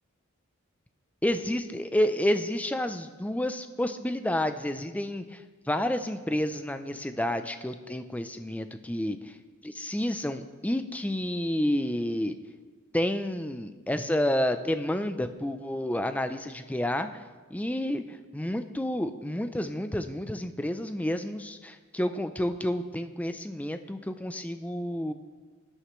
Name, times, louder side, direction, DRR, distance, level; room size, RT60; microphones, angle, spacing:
voice 1, 1.2-5.4 5.7-9.3 9.6-12.4 12.9-17.2 17.5-25.1, left 1 dB, 5° left, 9 dB, 0.4 m, -30 dB
18.5 x 10.0 x 3.1 m, 1.4 s
head